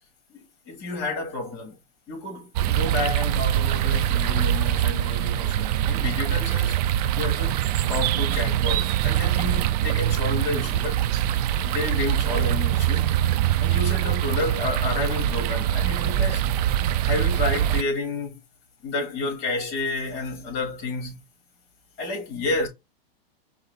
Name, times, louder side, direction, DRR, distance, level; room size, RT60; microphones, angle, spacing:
voice 1, 0.3-1.7 2.1-6.8 7.1-11.0 11.6-13.1 13.6-16.5 17.0-18.4 18.8-21.2 22.0-22.7, left 3 dB, 40° left, 3.3 m, -30 dB
sound 1, 2.6-17.8, right 11 dB, 40° right, 0.4 m, -23 dB
4.8 x 2.7 x 3.8 m
hypercardioid pair, 145°, 30 cm